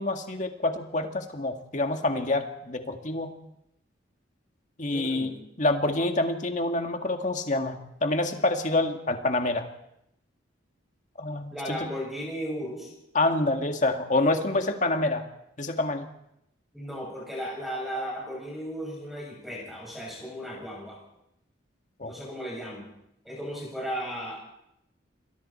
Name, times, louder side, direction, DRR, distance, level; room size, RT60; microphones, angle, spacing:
voice 1, 0.0-3.3 4.8-9.7 11.2-11.9 13.1-15.2 15.6-16.1 22.0-22.1, left 2 dB, 40° left, 5 dB, 1.9 m, -27 dB
voice 2, 4.9-5.4 11.5-12.9 16.7-21.0 22.0-22.9 23.2-24.4, equal, ahead, -3 dB, 7.2 m, -35 dB
27.5 x 22.0 x 4.4 m, 0.80 s
head